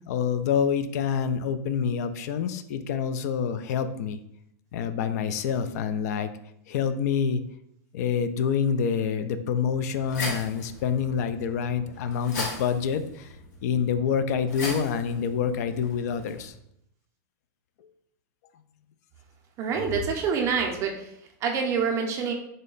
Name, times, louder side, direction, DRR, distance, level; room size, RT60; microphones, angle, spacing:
voice 1, 0.1-4.2 4.7-6.3 6.7-7.4 7.9-13.3 13.6-16.5, left 7 dB, 65° left, 11 dB, 0.3 m, -27 dB
sound 1, 9.7-16.5, left 2 dB, 85° left, 1.1 m, -38 dB
voice 2, 19.6-21.1 21.4-22.3, right 5 dB, 30° right, 2 dB, 0.5 m, -26 dB
3.7 x 2.1 x 3.8 m, 0.75 s
supercardioid pair, 145°, 9 cm